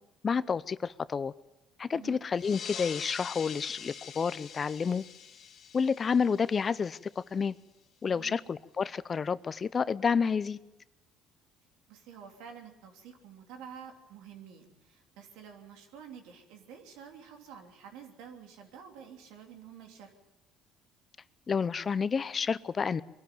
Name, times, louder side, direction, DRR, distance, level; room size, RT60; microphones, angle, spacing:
voice 1, 0.2-1.3 1.8-5.0 5.7-7.5 8.0-10.6 21.5-23.0, left 6 dB, 35° left, 17 dB, 0.6 m, -29 dB
sound 1, 2.3-7.4, left 8 dB, 55° left, 1.9 m, -44 dB
voice 2, 8.1-8.4 11.9-20.1, right 7 dB, 85° right, 3 dB, 3.1 m, -49 dB
23.0 x 12.5 x 9.2 m, 1.0 s
supercardioid pair, 90°, 0 cm